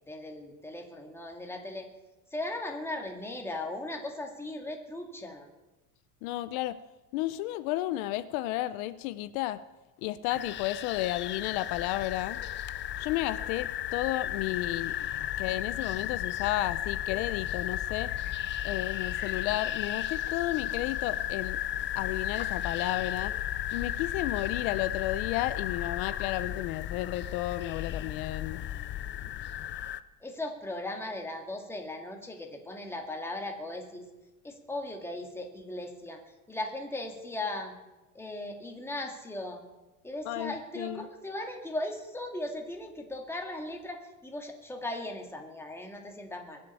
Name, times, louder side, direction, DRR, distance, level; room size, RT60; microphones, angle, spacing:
voice 1, 0.1-1.9 2.3-5.5 30.2-34.1 34.4-36.2 36.5-37.7 38.1-39.6 40.0-46.6, left 1 dB, 5° left, 2 dB, 2.1 m, -38 dB
voice 2, 6.2-6.8 7.1-9.6 10.0-12.4 13.0-14.9 15.4-18.1 18.6-21.6 21.9-23.3 23.7-28.6 40.2-41.1, left 15 dB, 70° left, 13 dB, 0.9 m, -32 dB
sound 1, 10.3-30.0, left 12 dB, 25° left, 0.5 m, -34 dB
21.0 x 7.6 x 8.9 m, 1.1 s
cardioid pair, 150°, 43 cm